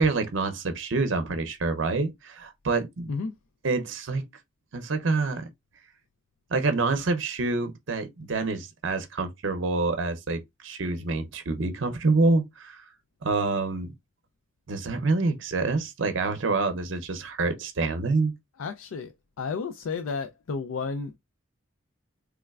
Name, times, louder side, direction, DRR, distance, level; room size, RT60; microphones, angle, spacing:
voice 1, 0.0-3.1 3.6-4.3 4.7-5.5 6.5-12.9 13.2-13.9 14.7-18.3, right 3 dB, 65° right, 0.6 m, -27 dB
voice 2, 18.6-21.2, left 4 dB, 90° left, 0.4 m, -32 dB
3.5 x 3.1 x 2.3 m
head